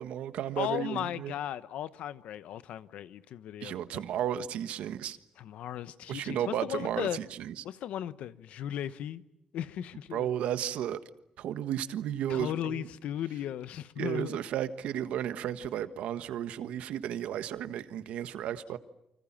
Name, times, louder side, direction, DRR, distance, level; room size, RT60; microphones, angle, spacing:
voice 1, 0.0-1.3 3.6-5.2 6.1-7.6 10.1-11.0 11.4-12.9 14.0-18.8, right 10 dB, 85° right, 1.4 m, -33 dB
voice 2, 0.6-4.0 5.4-7.2 7.6-9.2 9.5-10.3 12.3-14.4, left 11 dB, 85° left, 1.1 m, -36 dB
29.0 x 25.5 x 7.5 m
cardioid pair, 130°, 2 cm